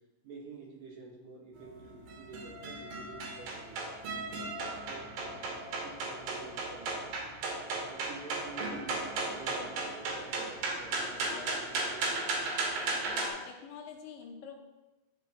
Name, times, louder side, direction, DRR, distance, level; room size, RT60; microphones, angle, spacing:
voice 1, 0.2-4.0 4.9-7.3 7.9-12.1, right 3 dB, 60° right, -2 dB, 2.3 m, -49 dB
sound 1, 1.6-13.3, right 3 dB, 80° right, 3.0 m, -36 dB
voice 2, 11.0-11.6 13.1-14.6, left 7 dB, 75° left, 2 dB, 2.4 m, -46 dB
10.5 x 4.6 x 3.5 m, 1.1 s
omnidirectional pair, 4.0 m